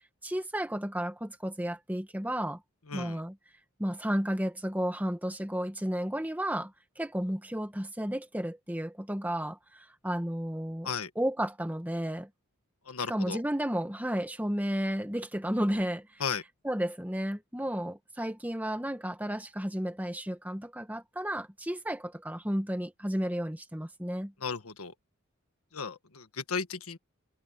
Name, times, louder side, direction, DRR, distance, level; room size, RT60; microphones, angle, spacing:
voice 1, 0.2-2.6 2.9-3.3 3.8-10.9 11.1-12.3 13.1-16.2 16.6-24.3, equal, 10° right, 1.5 m, -32 dB
voice 2, 2.9-3.2 10.8-11.1 12.8-13.4 16.2-16.4 24.4-24.9 25.7-27.0, left 5 dB, 85° left, 1.5 m, -35 dB
head